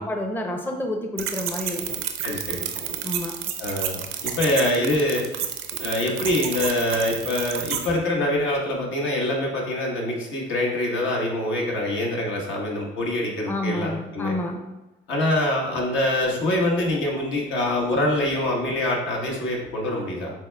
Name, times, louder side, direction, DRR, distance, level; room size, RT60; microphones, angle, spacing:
voice 1, 0.0-2.0 3.0-3.4 13.5-14.6, left 1 dB, 10° left, 4 dB, 0.5 m, -29 dB
sound 1, 1.2-7.9, right 9 dB, 85° right, 0.5 m, -30 dB
voice 2, 2.2-2.6 3.6-5.2 5.8-14.3 15.1-20.3, left 1 dB, 75° left, -1 dB, 1.2 m, -25 dB
6.1 x 3.5 x 2.2 m, 1.0 s
cardioid pair, 90°, 20 cm